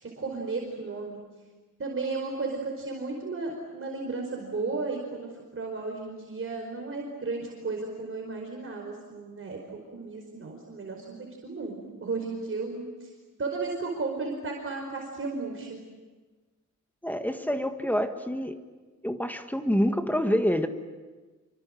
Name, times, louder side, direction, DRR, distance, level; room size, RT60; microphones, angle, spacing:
voice 1, 0.0-1.2 1.8-9.6 9.9-13.1 13.4-15.8, right 3 dB, 45° right, 0 dB, 4.8 m, -34 dB
voice 2, 17.0-18.6 19.0-20.7, equal, 5° left, 6 dB, 1.7 m, -27 dB
27.0 x 25.0 x 7.8 m, 1.3 s
wide cardioid pair, 125°, 31 cm